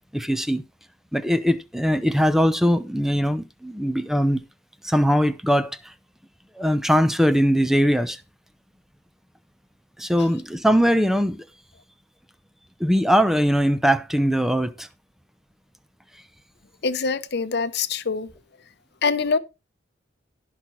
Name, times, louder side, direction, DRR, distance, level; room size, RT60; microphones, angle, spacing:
voice 1, 0.1-0.6 1.1-4.4 4.8-5.9 6.6-8.2 10.0-11.4 12.8-14.9, equal, ahead, 0.7 m, -21 dB
voice 2, 16.8-18.3 19.0-19.4, left 4 dB, 60° left, 0.8 m, -24 dB
17.5 x 5.9 x 3.2 m
head